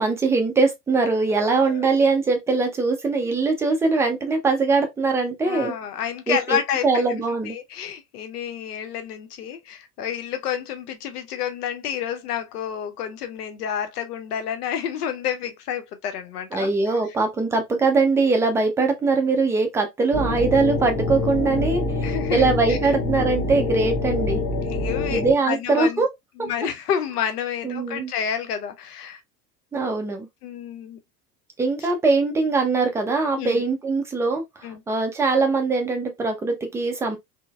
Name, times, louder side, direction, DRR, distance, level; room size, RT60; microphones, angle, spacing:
voice 1, 0.0-5.7 6.3-7.6 16.5-24.4 25.1-26.1 27.6-28.1 29.7-30.3 31.6-37.2, right 3 dB, 5° right, 0.3 m, -22 dB
voice 2, 5.4-16.7 22.0-22.9 24.7-26.0 26.4-29.2 30.4-31.0 33.4-33.6 34.6-34.8, left 9 dB, 65° left, 0.7 m, -29 dB
sound 1, 20.1-25.3, left 3 dB, 30° left, 1.1 m, -25 dB
3.7 x 2.1 x 2.3 m
figure-of-eight pair, 75°, 49 cm